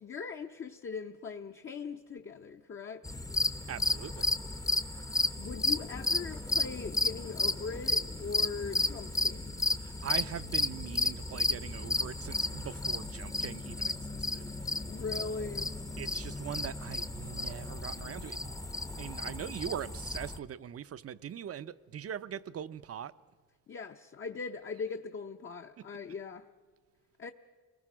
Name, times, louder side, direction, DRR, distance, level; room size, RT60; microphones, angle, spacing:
voice 1, 0.0-3.1 5.4-9.5 14.9-15.8 23.7-26.5 27.2-27.3, left 5 dB, 40° left, 0.7 m, -40 dB
sound 1, 3.0-20.4, left 2 dB, 10° left, 0.6 m, -33 dB
voice 2, 3.7-4.3 9.8-14.5 16.0-18.6 19.0-23.1, right 9 dB, 50° right, 0.6 m, -41 dB
29.0 x 20.0 x 6.1 m
wide cardioid pair, 140°, 30 cm